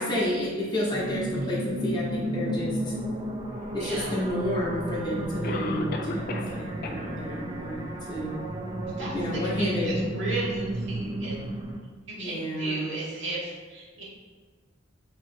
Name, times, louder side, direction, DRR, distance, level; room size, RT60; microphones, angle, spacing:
voice 1, 0.0-3.0 3.7-8.4 9.1-9.9 12.2-12.9, left 1 dB, 25° left, -6 dB, 0.9 m, -30 dB
sound 1, 0.9-11.8, right 1 dB, 20° right, 0.4 m, -33 dB
voice 2, 3.8-4.2 9.0-9.2 9.6-11.5 12.2-14.0, right 2 dB, 65° right, -6 dB, 1.0 m, -35 dB
Cough, 4.3-4.4 5.4-6.6 6.8-6.9 7.5-7.6 8.1-8.2, left 3 dB, 50° left, 0.4 m, -33 dB
3.0 x 3.0 x 4.3 m, 1.5 s
head